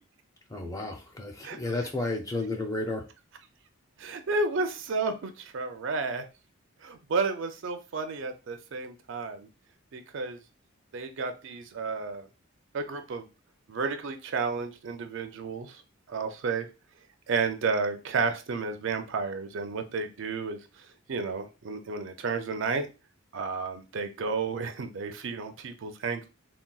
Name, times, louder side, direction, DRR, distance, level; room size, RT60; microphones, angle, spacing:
voice 1, 0.5-3.1, left 2 dB, 15° left, 2 dB, 0.4 m, -32 dB
voice 2, 4.0-6.2 6.8-9.5 9.9-10.4 10.9-12.3 12.7-13.3 13.7-15.8 16.1-16.7 17.3-22.9 23.3-26.3, right 4 dB, 60° right, 7 dB, 0.4 m, -32 dB
3.8 x 2.2 x 2.3 m, 0.29 s
head